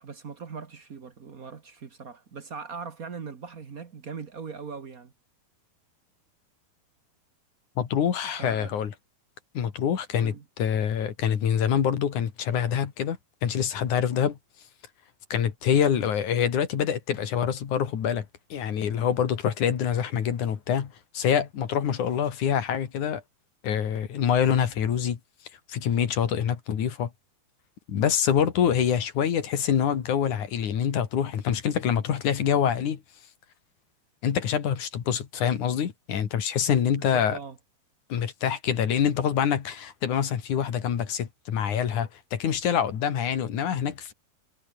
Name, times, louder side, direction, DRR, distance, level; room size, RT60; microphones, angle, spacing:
voice 1, 0.0-5.1 8.4-8.7 10.2-10.4 37.0-37.6, right 5 dB, 60° right, 0.9 m, -40 dB
voice 2, 7.8-8.9 9.6-14.4 15.3-18.3 18.5-23.2 23.6-25.2 25.7-27.1 27.9-33.0 34.2-37.4 38.1-44.1, left 8 dB, 60° left, 3.5 m, -26 dB
omnidirectional pair, 4.1 m